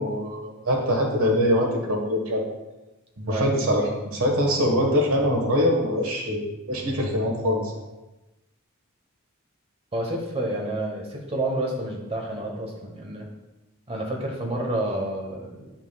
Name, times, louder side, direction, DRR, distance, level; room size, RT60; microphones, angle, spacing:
voice 1, 0.0-2.5 3.2-7.7, equal, 85° right, 1 dB, 1.4 m, -23 dB
voice 2, 9.9-13.3 13.9-15.7, right 1 dB, 30° right, 0 dB, 1.0 m, -29 dB
10.0 x 5.9 x 2.3 m, 1.1 s
head